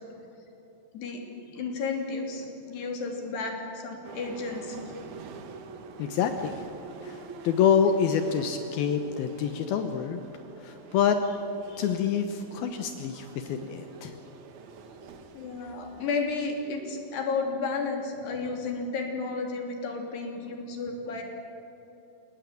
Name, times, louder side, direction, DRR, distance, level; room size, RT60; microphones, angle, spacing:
voice 1, 1.5-4.9 11.7-11.8 15.3-21.2, left 4 dB, 55° left, 2 dB, 5.0 m, -32 dB
sound 1, 4.0-16.1, right 4 dB, 80° right, 1.7 m, -46 dB
voice 2, 6.0-6.6 7.0-10.2 10.6-11.2 11.8-14.2, left 7 dB, 80° left, 7 dB, 2.1 m, -27 dB
29.5 x 18.0 x 9.5 m, 3.0 s
omnidirectional pair, 5.9 m